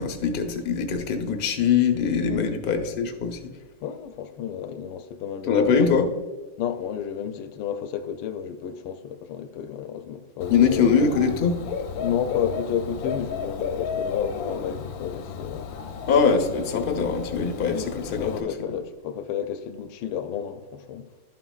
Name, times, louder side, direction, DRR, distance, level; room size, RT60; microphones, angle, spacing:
voice 1, 0.0-3.4 5.5-6.1 10.5-11.6 16.1-18.5, left 6 dB, 50° left, 0.7 m, -22 dB
voice 2, 3.8-5.7 6.6-10.9 12.0-15.7 17.7-21.1, left 8 dB, 90° left, 1.3 m, -32 dB
Dog / Bird, 10.4-18.4, left 6 dB, 65° left, 1.0 m, -33 dB
12.0 x 5.8 x 2.3 m
omnidirectional pair, 1.9 m